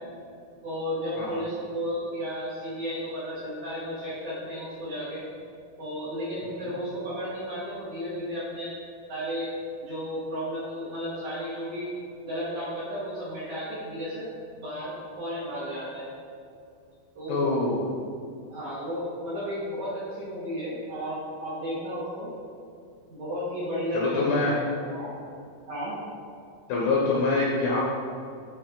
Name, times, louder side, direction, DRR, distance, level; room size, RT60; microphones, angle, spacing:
voice 1, 0.6-5.2 5.8-8.7 9.1-9.5 9.8-11.9 12.2-14.3 14.6-16.1 17.2-17.4 18.5-22.3 23.1-24.2 24.8-25.1 25.7-26.0, equal, 55° right, -10 dB, 2.3 m, -33 dB
voice 2, 17.3-17.8 23.9-24.6 26.7-27.9, left 3 dB, 75° left, -4 dB, 2.5 m, -25 dB
11.5 x 4.6 x 3.8 m, 2.4 s
omnidirectional pair, 5.5 m